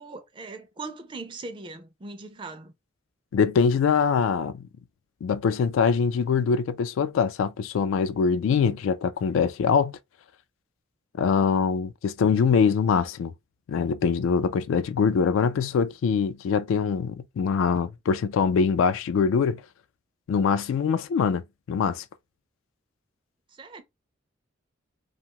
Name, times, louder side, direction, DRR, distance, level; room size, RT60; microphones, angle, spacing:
voice 1, 0.0-2.7 23.5-23.8, right 3 dB, 25° right, 0.4 m, -40 dB
voice 2, 3.3-4.6 5.2-9.9 11.2-13.3 13.7-19.6 20.3-21.4 21.7-22.0, left 6 dB, 85° left, 0.3 m, -23 dB
2.6 x 2.3 x 2.9 m
head